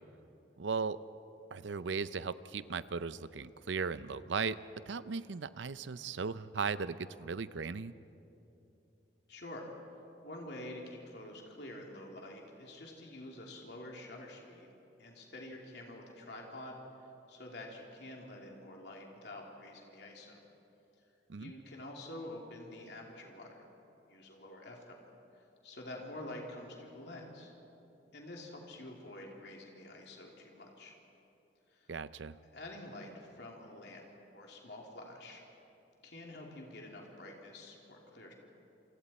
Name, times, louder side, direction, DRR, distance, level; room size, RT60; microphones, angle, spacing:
voice 1, 0.6-1.0 1.5-4.6 4.9-7.9 21.3-21.5 31.9-32.4, right 5 dB, 85° right, 15 dB, 0.6 m, -37 dB
voice 2, 9.3-9.7 10.2-14.7 15.0-16.8 17.3-20.4 21.4-23.5 24.1-25.0 25.6-27.5 28.1-30.9 31.7-31.9 32.5-34.0 34.3-35.4 36.0-38.3, left 1 dB, 65° left, -1 dB, 2.9 m, -48 dB
28.5 x 25.0 x 4.3 m, 2.9 s
head